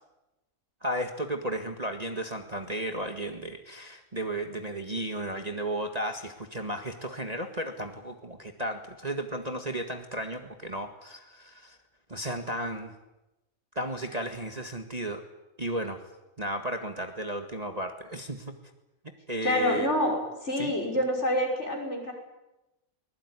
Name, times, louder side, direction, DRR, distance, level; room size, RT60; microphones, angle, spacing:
voice 1, 0.8-11.8 12.1-12.9 13.8-15.2 15.6-16.0 16.4-18.5 19.3-19.9 20.6-20.7, right 1 dB, 25° right, 5 dB, 1.9 m, -34 dB
voice 2, 19.4-20.2 20.4-22.1, left 1 dB, 45° left, 1 dB, 6.3 m, -27 dB
24.0 x 20.5 x 9.8 m, 0.99 s
omnidirectional pair, 1.6 m